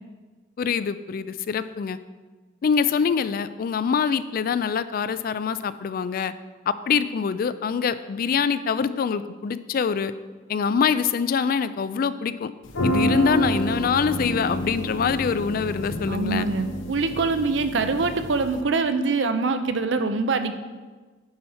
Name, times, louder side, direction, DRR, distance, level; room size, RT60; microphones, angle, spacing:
voice 1, 0.6-2.0 2.6-6.3 6.7-10.1 10.5-12.5 12.8-16.5, left 6 dB, 50° left, 14 dB, 0.3 m, -24 dB
sound 1, 12.7-18.6, equal, 75° left, 0.8 m, -28 dB
voice 2, 16.1-20.5, right 4 dB, 70° right, 9 dB, 0.6 m, -24 dB
9.6 x 4.3 x 5.6 m, 1.4 s
head